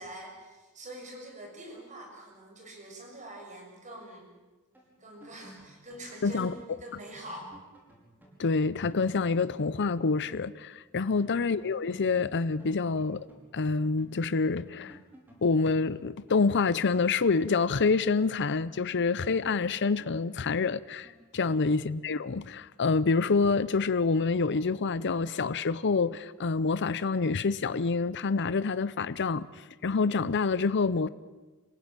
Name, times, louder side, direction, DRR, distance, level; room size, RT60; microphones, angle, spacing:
voice 1, 0.0-4.3 5.0-6.5 6.8-7.5 11.0-11.3 21.4-21.7, right 1 dB, 35° right, 6.5 m, -45 dB
sound 1, 4.7-10.5 10.8-10.9 11.2-14.1 14.4-18.2 18.6-21.4, right 1 dB, 10° right, 5.5 m, -56 dB
voice 2, 6.2-6.5 8.4-13.2 13.5-15.0 15.4-31.1, left 4 dB, 55° left, 0.6 m, -27 dB
26.5 x 16.0 x 9.0 m
head